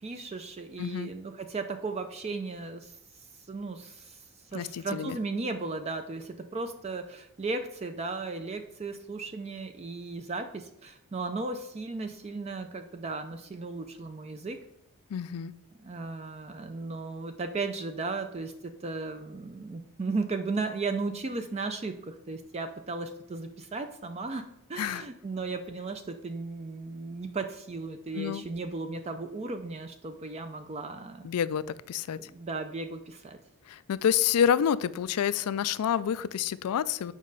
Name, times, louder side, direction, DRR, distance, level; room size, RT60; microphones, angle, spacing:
voice 1, 0.0-4.2 4.5-14.6 15.8-24.4 24.7-31.3 32.2-33.4, right 3 dB, 30° right, 0.4 m, -36 dB
voice 2, 0.8-1.1 4.5-5.2 15.1-15.5 24.8-25.0 28.1-28.4 31.2-32.2 33.7-37.1, left 8 dB, 90° left, 0.4 m, -28 dB
7.3 x 5.1 x 3.9 m
head